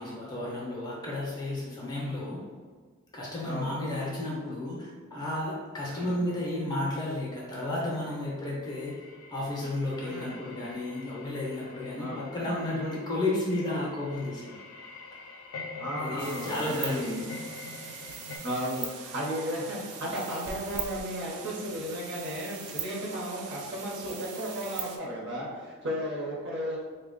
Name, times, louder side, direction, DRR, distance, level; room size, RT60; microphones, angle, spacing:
voice 1, 0.0-2.4 3.1-8.9 9.3-14.6 16.0-17.3, left 1 dB, 20° left, -5 dB, 0.5 m, -32 dB
voice 2, 5.8-6.2 10.0-10.4 12.0-12.2 15.8-17.2 18.4-26.8, equal, 50° right, -4 dB, 0.8 m, -34 dB
sound 1, 8.6-18.4, left 4 dB, 75° left, 0.4 m, -45 dB
sound 2, 16.2-25.0, right 7 dB, 90° right, 0.4 m, -41 dB
2.8 x 2.1 x 3.8 m, 1.5 s
head